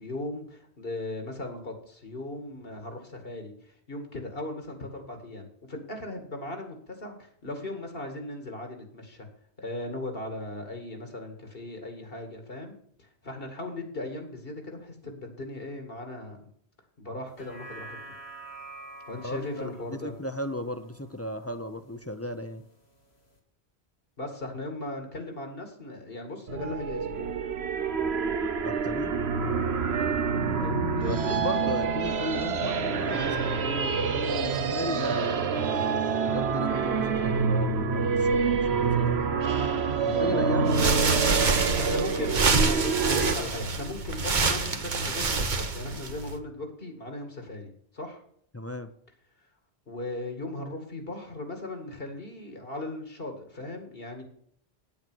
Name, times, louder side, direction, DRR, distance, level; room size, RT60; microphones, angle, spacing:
voice 1, 0.0-9.3 9.6-12.7 13.0-16.4 17.0-18.0 19.1-20.1 24.2-27.3 30.6-31.4 39.0-39.1 40.3-40.4 41.8-48.2 49.9-54.2, left 2 dB, 65° left, 5 dB, 2.4 m, -38 dB
sound 1, 17.3-21.8 22.2-22.3, right 2 dB, 90° left, 2.5 m, -47 dB
voice 2, 19.2-22.6 28.6-29.1 31.1-35.9 36.1-39.3 40.0-41.8 48.5-48.9, equal, 15° left, 9 dB, 0.6 m, -35 dB
sound 2, 26.5-43.3, right 5 dB, 85° right, 1.1 m, -27 dB
sound 3, 40.7-46.4, right 4 dB, 50° right, 1.2 m, -27 dB
9.2 x 8.8 x 6.2 m, 0.64 s
omnidirectional pair, 1.0 m